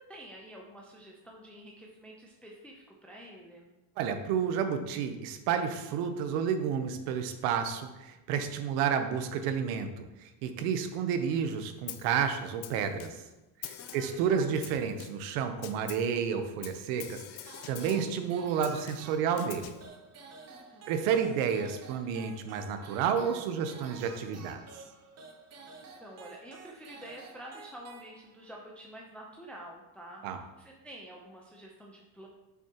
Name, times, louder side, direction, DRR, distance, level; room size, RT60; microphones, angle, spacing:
voice 1, 0.1-3.7 13.8-14.5 20.5-20.9 26.0-30.2 30.6-32.3, equal, 5° left, -1 dB, 0.6 m, -48 dB
voice 2, 4.0-13.2 13.6-19.7 20.9-24.6 30.2-30.4, right 7 dB, 85° right, 8 dB, 0.9 m, -31 dB
Snare drum, 11.9-12.2 12.6-13.3 13.6-14.2 14.6-15.3 15.6-16.2 16.6-18.2 18.6-19.9, left 12 dB, 55° left, 0.6 m, -45 dB
sound 1, 17.5-28.6, right 4 dB, 30° right, 0.9 m, -51 dB
7.1 x 6.1 x 2.9 m, 1.0 s
cardioid pair, 125°, 49 cm